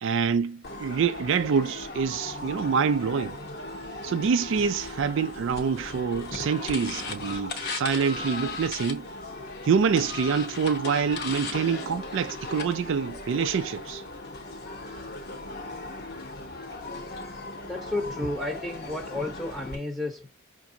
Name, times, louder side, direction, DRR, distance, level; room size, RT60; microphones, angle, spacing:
voice 1, 0.0-3.4 4.0-9.1 9.6-14.0, right 6 dB, 60° right, 0.3 m, -26 dB
sound 1, 0.6-19.8, left 3 dB, 50° left, 0.9 m, -37 dB
voice 2, 17.6-20.3, left 2 dB, ahead, 0.8 m, -32 dB
5.9 x 2.6 x 2.7 m
head